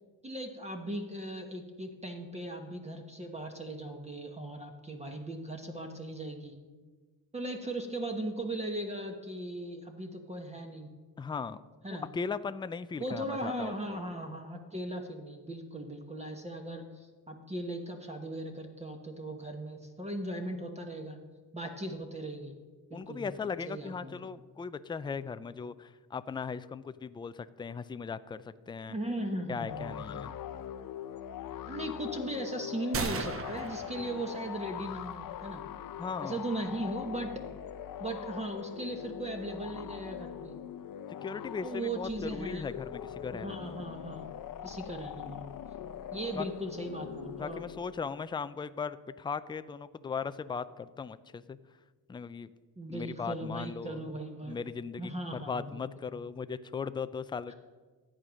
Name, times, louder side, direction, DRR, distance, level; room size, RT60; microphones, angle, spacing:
voice 1, 0.2-6.5 7.3-10.9 11.8-12.1 13.0-21.2 21.5-22.5 22.9-23.3 23.7-24.3 28.9-30.6 31.7-35.6 36.2-37.4 38.0-40.6 41.6-42.6 43.3-44.3 44.6-45.5 46.1-47.6 52.8-54.6 55.0-55.8, right 1 dB, 15° right, 4 dB, 1.2 m, -38 dB
voice 2, 11.2-11.6 11.9-14.0 22.9-29.0 29.5-30.3 36.0-36.4 41.2-43.9 46.3-46.5 47.4-51.6 52.1-52.5 52.9-54.0 54.5-57.5, left 5 dB, 15° left, 13 dB, 0.3 m, -38 dB
sound 1, 29.7-48.1, left 10 dB, 55° left, 0.8 m, -42 dB
sound 2, 32.9-34.8, right 6 dB, 35° right, 0.7 m, -37 dB
13.5 x 8.9 x 6.3 m, 1.4 s
cardioid pair, 135°, 40 cm